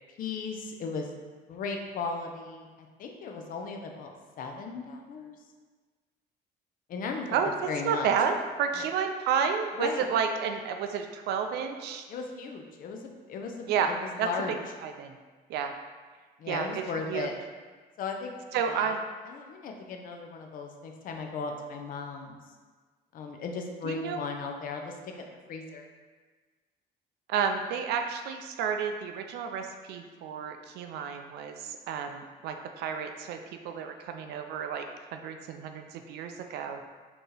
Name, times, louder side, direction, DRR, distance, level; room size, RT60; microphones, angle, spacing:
voice 1, 0.2-1.1 1.5-2.7 3.0-4.1 4.4-5.4 6.9-7.4 7.7-8.1 8.7-8.8 9.8-10.1 12.1-14.5 16.4-17.3 18.0-18.9 19.3-22.4 23.1-24.9 25.5-25.9, left 4 dB, 55° left, 3 dB, 0.6 m, -36 dB
voice 2, 7.8-12.0 13.7-13.9 14.2-14.3 14.8-15.1 15.5-15.7 16.5-16.7 17.1-17.3 18.5-19.0 23.8-24.2 27.3-34.9 35.1-36.8, right 7 dB, 75° right, 6 dB, 0.4 m, -31 dB
4.2 x 2.8 x 3.3 m, 1.4 s
cardioid pair, 110°, 17 cm